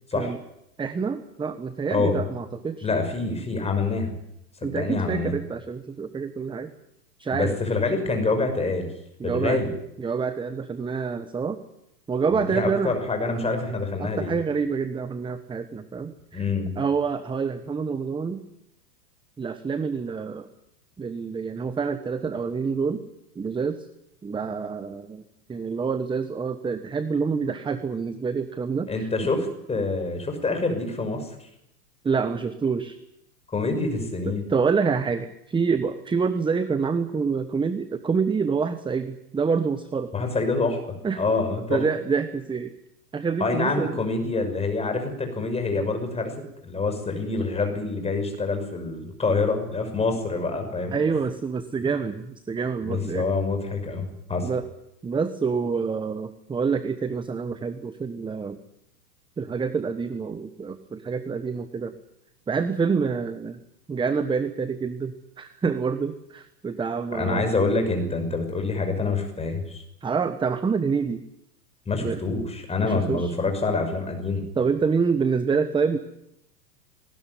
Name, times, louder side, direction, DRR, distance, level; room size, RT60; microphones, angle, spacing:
voice 1, 0.8-2.9 4.6-6.7 7.2-7.6 9.2-9.6 10.0-11.6 12.1-12.9 14.0-16.4 16.8-18.4 19.4-20.5 21.0-23.0 23.3-23.9 24.2-25.2 25.5-29.1 32.0-33.0 34.5-40.1 41.0-41.2 41.7-42.7 43.1-44.0 50.9-53.3 54.4-54.6 55.0-58.6 59.4-61.9 62.5-63.6 63.9-67.4 70.0-71.2 72.0-72.2 72.8-73.3 74.5-76.0, right 5 dB, 10° right, 11 dB, 1.2 m, -27 dB
voice 2, 1.9-2.2 2.8-4.1 4.6-5.3 7.3-8.9 9.2-9.7 12.3-14.3 16.3-16.7 28.9-31.5 33.5-34.4 40.1-41.8 43.4-46.4 46.6-51.0 52.8-54.5 67.1-69.8 71.9-74.4, left 3 dB, 15° left, 5 dB, 6.1 m, -26 dB
20.0 x 19.0 x 9.6 m, 0.80 s
hypercardioid pair, 115°, 46 cm